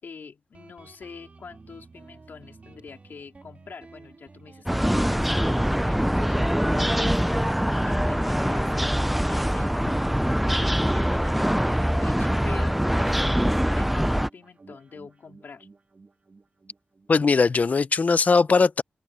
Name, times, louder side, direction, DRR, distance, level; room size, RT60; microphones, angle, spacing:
voice 1, 0.0-9.9 10.5-15.7, left 5 dB, 70° left, 3.3 m, -45 dB
Guitar, 0.5-17.7, right 3 dB, 45° right, 2.1 m, -50 dB
sound 1, 4.7-14.3, equal, 5° right, 0.4 m, -23 dB
voice 2, 17.1-18.8, left 4 dB, 50° left, 0.6 m, -20 dB
wide cardioid pair, 100°, 3 cm